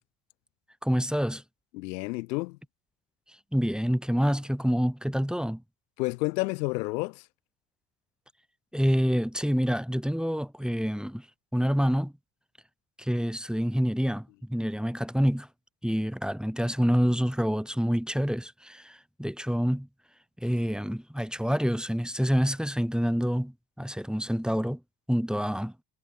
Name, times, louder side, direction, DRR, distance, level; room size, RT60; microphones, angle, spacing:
voice 1, 0.8-1.4 3.5-5.6 8.7-11.3 11.5-12.1 13.0-15.5 15.8-19.9 20.4-24.8 25.1-25.7, equal, ahead, 4.3 m, -27 dB
voice 2, 1.7-2.6 6.0-7.2, left 23 dB, 80° left, 5.4 m, -30 dB
hypercardioid pair, 55°, 50 cm